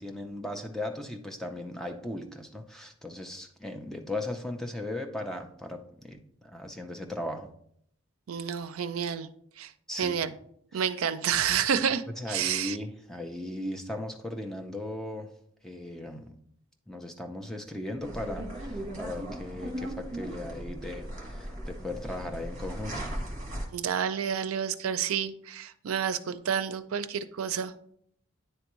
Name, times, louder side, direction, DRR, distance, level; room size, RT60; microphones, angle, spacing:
voice 1, 0.0-7.5 9.9-10.1 10.7-10.9 12.2-15.3 15.6-16.3 16.9-23.1, left 1 dB, ahead, 4 dB, 0.4 m, -37 dB
voice 2, 8.3-9.3 9.6-9.7 10.0-10.3 10.7-12.8 23.7-27.7, right 8 dB, 85° right, 12 dB, 0.4 m, -29 dB
sound 1, 18.0-23.6, right 1 dB, 40° right, 1.3 m, -37 dB
9.6 x 3.4 x 3.0 m, 0.67 s
head